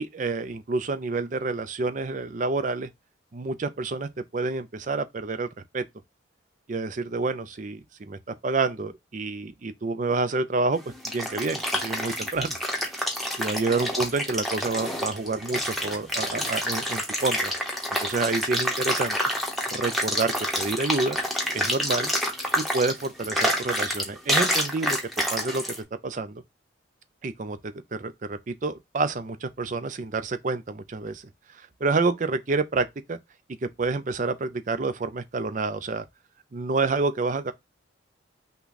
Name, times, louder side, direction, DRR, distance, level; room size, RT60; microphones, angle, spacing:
voice 1, 0.0-2.9 3.3-5.5 5.7-5.8 6.7-10.8 11.1-12.6 12.9-13.1 13.4-17.5 18.0-19.2 19.7-21.2 21.5-22.1 22.6-25.0 25.3-25.6 26.0-26.4 27.2-31.2 31.5-33.2 33.6-36.0 36.5-37.5, right 3 dB, 40° right, 0.4 m, -28 dB
sound 1, 10.7-25.8, equal, ahead, 0.9 m, -28 dB
5.8 x 2.3 x 3.9 m
head